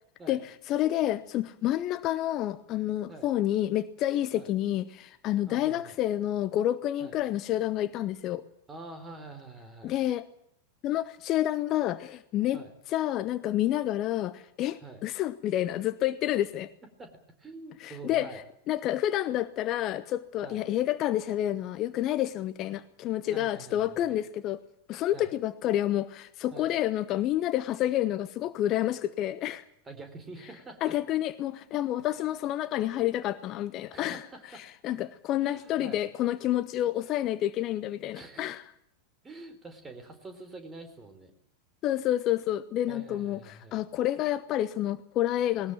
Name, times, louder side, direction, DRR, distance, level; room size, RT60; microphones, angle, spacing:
voice 1, 0.3-8.4 9.8-10.3 10.8-16.7 17.8-24.6 24.9-29.6 30.8-34.2 34.5-38.6 41.8-45.7, left 13 dB, 35° left, 14 dB, 0.9 m, -29 dB
voice 2, 5.5-6.0 7.0-7.1 8.7-9.9 12.5-12.7 14.8-15.0 17.0-17.1 17.4-18.4 20.4-20.6 23.3-24.2 25.1-25.3 26.5-26.7 29.8-30.9 32.2-32.3 33.9-34.6 35.4-36.0 38.1-38.5 39.2-41.3 42.9-43.8, right 3 dB, 15° right, 8 dB, 4.1 m, -46 dB
19.5 x 19.0 x 8.9 m, 0.70 s
figure-of-eight pair, 90°, 0 cm